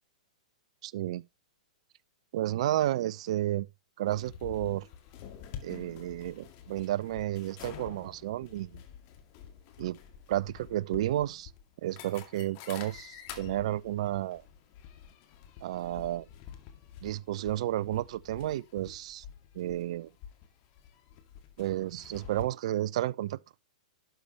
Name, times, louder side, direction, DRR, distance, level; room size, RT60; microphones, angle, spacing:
voice 1, 0.8-1.2 2.3-3.7 4.0-4.9 5.6-8.8 9.8-10.0 10.3-11.5 11.8-14.4 15.6-16.3 17.0-19.2 19.5-20.1 21.6-23.4, right 13 dB, 60° right, 0.5 m, -32 dB
sound 1, 4.1-22.4, left 9 dB, 45° left, 2.1 m, -48 dB
12.0 x 6.8 x 3.2 m
hypercardioid pair, 115°, 4 cm